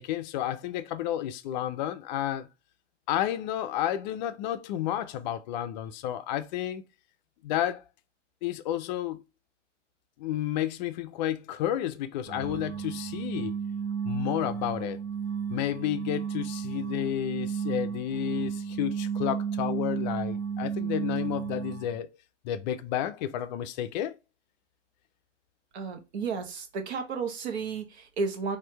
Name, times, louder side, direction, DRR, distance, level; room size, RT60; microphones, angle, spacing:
voice 1, 0.0-2.5 3.1-6.8 7.4-7.8 8.4-9.2 10.2-13.6 14.0-15.0 15.5-22.1 22.4-24.2, left 11 dB, 40° left, 0.4 m, -31 dB
sound 1, 12.3-22.0, right 7 dB, 25° right, 0.8 m, -33 dB
voice 2, 25.7-28.6, right 4 dB, 60° right, 1.2 m, -33 dB
4.3 x 2.6 x 3.1 m
hypercardioid pair, 115°, 37 cm